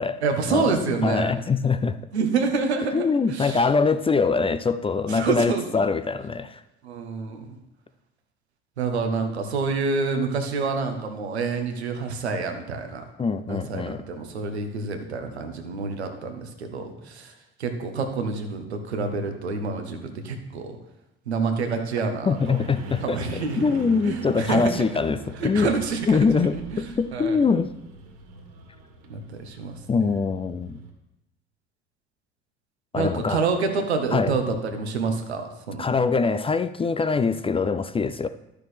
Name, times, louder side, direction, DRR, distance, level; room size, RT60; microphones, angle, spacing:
voice 1, 0.2-1.4 2.1-3.6 5.1-5.8 6.8-7.6 8.8-13.0 13.5-17.3 17.6-20.8 21.3-22.7 23.0-23.6 24.0-24.9 25.4-26.3 26.5-26.8 27.1-27.4 29.1-29.8 32.9-35.8, right 4 dB, 85° right, 5 dB, 1.1 m, -27 dB
voice 2, 1.0-2.0 2.9-6.6 13.2-14.0 22.3-23.2 23.5-25.7 26.1-27.7 29.9-30.8 32.9-33.4 34.1-34.4 35.8-38.3, left 4 dB, 20° left, 12 dB, 0.4 m, -23 dB
sound 1, 22.3-30.9, right 1 dB, 55° right, 2.0 m, -42 dB
12.0 x 6.6 x 3.3 m, 0.89 s
figure-of-eight pair, 55°, 32 cm